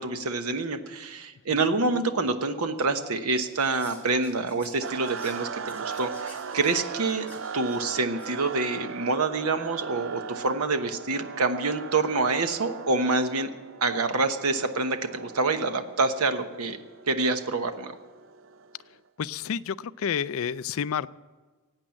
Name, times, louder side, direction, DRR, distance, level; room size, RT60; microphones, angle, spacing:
voice 1, 0.0-13.5 13.8-18.0, right 3 dB, 90° right, 8 dB, 1.0 m, -27 dB
Whispering, 3.3-8.4, left 3 dB, 10° left, 3.1 m, -52 dB
sound 1, 4.8-18.9, right 6 dB, 60° right, 0.4 m, -39 dB
voice 2, 19.2-21.1, left 7 dB, 70° left, 16 dB, 0.4 m, -29 dB
17.5 x 8.8 x 7.6 m, 1.3 s
head